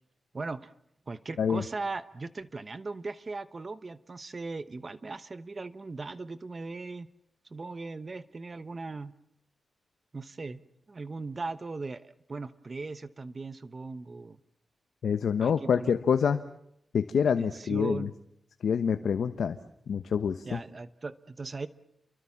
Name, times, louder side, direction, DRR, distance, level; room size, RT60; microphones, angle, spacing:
voice 1, 0.3-0.7 1.1-7.1 7.5-9.1 10.1-10.6 10.9-14.4 15.4-15.9 17.4-18.1 20.4-21.7, right 3 dB, 35° right, 13 dB, 1.0 m, -38 dB
voice 2, 15.0-16.4 16.9-18.1 18.6-19.6 19.9-20.6, left 7 dB, 80° left, 9 dB, 1.1 m, -26 dB
29.0 x 24.0 x 7.4 m, 0.75 s
wide cardioid pair, 100°, 0 cm